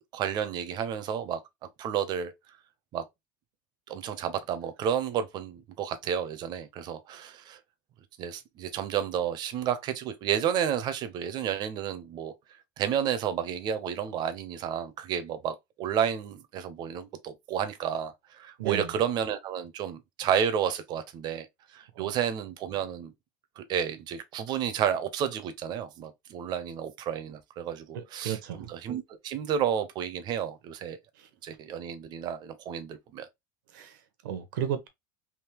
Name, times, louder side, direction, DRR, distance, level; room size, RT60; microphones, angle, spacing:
voice 1, 0.1-1.4 1.8-2.3 2.9-3.0 3.9-7.6 8.2-12.3 12.8-21.5 21.7-23.1 23.6-31.0 31.4-33.3, right 8 dB, 45° right, 0.8 m, -31 dB
voice 2, 18.6-18.9 21.9-22.1 27.9-28.7 31.2-31.3 33.7-34.0 34.2-34.9, right 9 dB, 80° right, 1.0 m, -34 dB
3.6 x 2.7 x 3.0 m
supercardioid pair, 125°, 10 cm